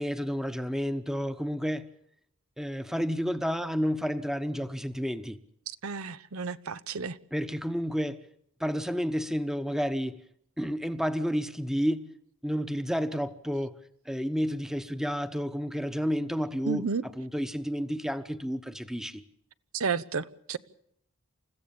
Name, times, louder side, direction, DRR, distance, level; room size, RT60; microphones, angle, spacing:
voice 1, 0.0-1.9 2.6-5.4 7.3-8.2 8.6-10.2 10.6-12.1 12.4-13.8 14.1-19.2, equal, ahead, 1.0 m, -30 dB
voice 2, 5.8-7.2 16.7-17.0 19.7-20.6, right 5 dB, 80° right, 0.8 m, -32 dB
29.0 x 15.0 x 7.1 m
head